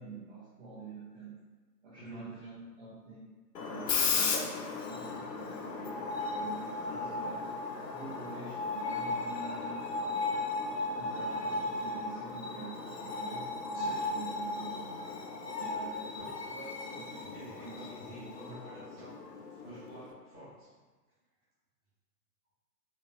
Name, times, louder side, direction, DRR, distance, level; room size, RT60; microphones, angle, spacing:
voice 1, 0.0-1.4 1.8-7.4 7.9-10.0 11.0-14.9 15.6-16.3 16.9-18.7, right 3 dB, 45° right, -9 dB, 0.8 m, -47 dB
Screech, 3.5-20.1, left 3 dB, 85° left, 0.6 m, -36 dB
voice 2, 13.7-14.0 15.5-15.8 16.1-19.2 19.6-20.7, equal, 20° left, -14 dB, 0.4 m, -49 dB
2.9 x 2.5 x 2.9 m, 1.3 s
figure-of-eight pair, 125°, 48 cm